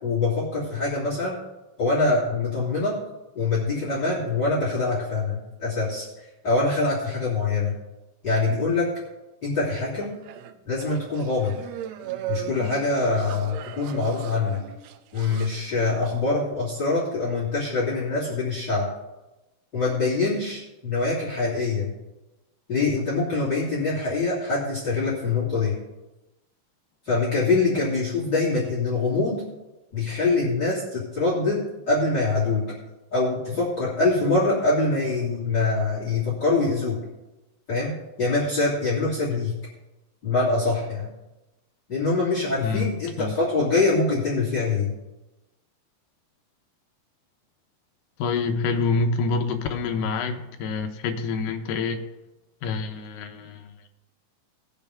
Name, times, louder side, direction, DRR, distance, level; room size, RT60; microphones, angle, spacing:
voice 1, 0.0-1.4 1.8-3.0 3.3-6.0 6.4-7.7 8.2-8.9 9.4-10.1 10.6-11.6 12.3-14.6 15.1-18.9 19.7-21.9 22.7-25.7 27.0-29.4 29.9-31.6 31.9-32.7 33.1-37.0 37.7-37.9 38.2-39.5 40.2-41.1 41.9-44.9, left 3 dB, 30° left, -8 dB, 3.1 m, -24 dB
sound 1, 10.0-15.5, right 11 dB, 85° right, 2.5 m, -37 dB
voice 2, 42.6-43.3 48.2-52.0 52.6-53.7, left 4 dB, 75° left, 5 dB, 2.4 m, -27 dB
19.5 x 6.7 x 3.5 m, 1.0 s
omnidirectional pair, 4.2 m